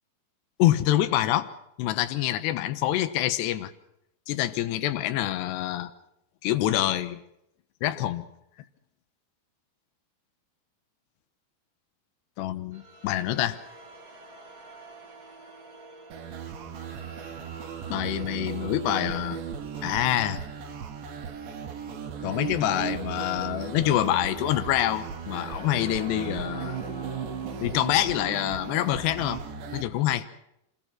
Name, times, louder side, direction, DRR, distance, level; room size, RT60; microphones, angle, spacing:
voice 1, 0.6-1.5 1.8-3.7 4.3-5.9 6.4-7.2 7.8-8.3 12.4-13.6 17.9-19.4 19.8-20.4 22.2-26.8 27.6-29.4 29.7-30.3, left 13 dB, 75° left, 10 dB, 3.2 m, -26 dB
sound 1, 12.7-29.7, right 1 dB, 25° right, 3.3 m, -47 dB
sound 2, 16.1-29.8, right 7 dB, 75° right, 4.0 m, -36 dB
26.5 x 21.0 x 6.2 m, 0.79 s
omnidirectional pair, 5.2 m